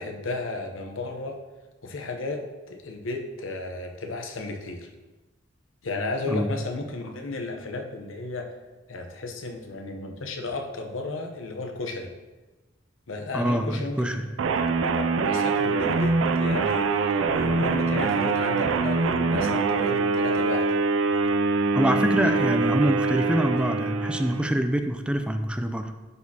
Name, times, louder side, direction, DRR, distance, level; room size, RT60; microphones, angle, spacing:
voice 1, 0.0-1.4 1.8-4.9 5.8-8.5 8.9-12.1 13.1-14.1 14.9-20.7 22.2-22.9, left 3 dB, 85° left, 4 dB, 0.8 m, -34 dB
voice 2, 13.3-14.3 21.7-26.0, equal, 5° right, 7 dB, 0.3 m, -25 dB
sound 1, 14.4-24.6, right 4 dB, 90° right, 0.4 m, -24 dB
10.5 x 4.2 x 2.8 m, 1.2 s
head